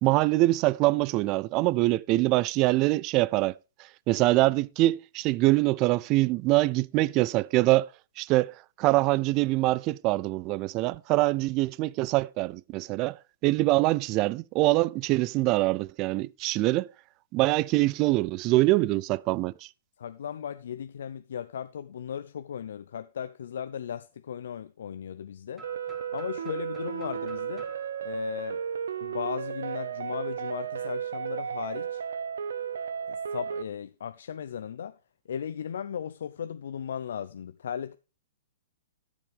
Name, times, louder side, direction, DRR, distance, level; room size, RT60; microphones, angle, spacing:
voice 1, 0.0-3.6 4.1-7.9 8.2-13.2 13.4-16.9 17.3-19.5, right 19 dB, 35° right, 0.4 m, -24 dB
voice 2, 20.0-25.6 26.1-27.7 28.0-28.6 29.0-32.0 33.1-35.0 35.3-37.9, left 8 dB, 70° left, 0.6 m, -36 dB
sound 1, 25.5-29.4, right 3 dB, 10° right, 2.3 m, -50 dB
sound 2, 25.6-33.6, right 8 dB, 75° right, 0.7 m, -34 dB
12.5 x 7.2 x 3.5 m
hypercardioid pair, 130°, 0 cm